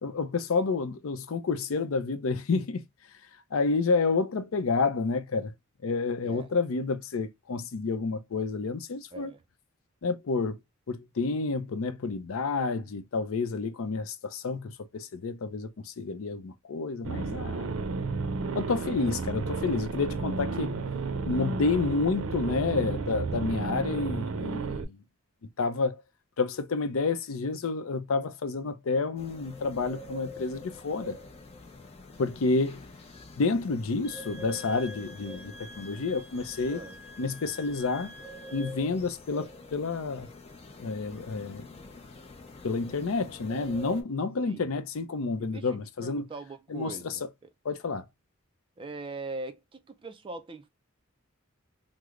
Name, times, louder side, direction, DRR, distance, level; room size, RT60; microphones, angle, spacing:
voice 1, 0.0-2.8 3.5-5.5 5.8-9.3 10.0-10.6 10.9-17.7 18.5-20.7 21.2-25.0 25.6-26.0 26.4-31.2 32.2-32.8 33.4-36.8 37.2-38.1 38.5-40.3 40.8-41.7 42.6-46.3 46.7-47.2 47.6-48.0, left 4 dB, 80° left, 0.5 m, -29 dB
voice 2, 9.1-9.4 36.7-37.0 44.4-44.7 45.4-47.5 48.8-50.7, right 3 dB, 25° right, 0.3 m, -41 dB
sound 1, 17.0-24.8, right 3 dB, 90° right, 0.5 m, -32 dB
sound 2, 29.2-44.0, left 2 dB, 30° left, 0.5 m, -46 dB
Wind instrument woodwind instrument, 34.0-38.8, left 1 dB, 55° left, 0.9 m, -48 dB
3.1 x 2.0 x 3.5 m
head